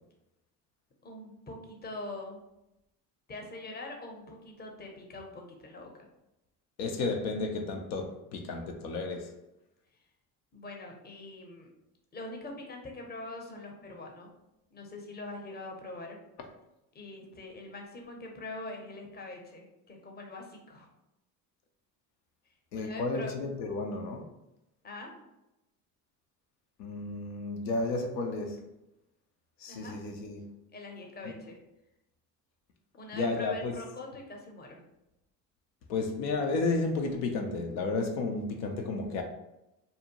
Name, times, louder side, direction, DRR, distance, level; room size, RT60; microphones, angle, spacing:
voice 1, 1.0-2.4 3.3-5.9 10.5-11.7 12.1-14.3 14.7-16.2 16.9-20.9 22.7-23.4 24.8-25.1 29.7-30.0 30.7-31.6 32.9-34.8, left 2 dB, 20° left, 1 dB, 0.7 m, -43 dB
voice 2, 6.8-9.3 22.7-24.3 26.8-28.6 29.6-30.5 33.1-33.7 35.9-39.2, left 3 dB, 80° left, 3 dB, 0.6 m, -32 dB
2.6 x 2.1 x 2.8 m, 0.90 s
hypercardioid pair, 70°, 48 cm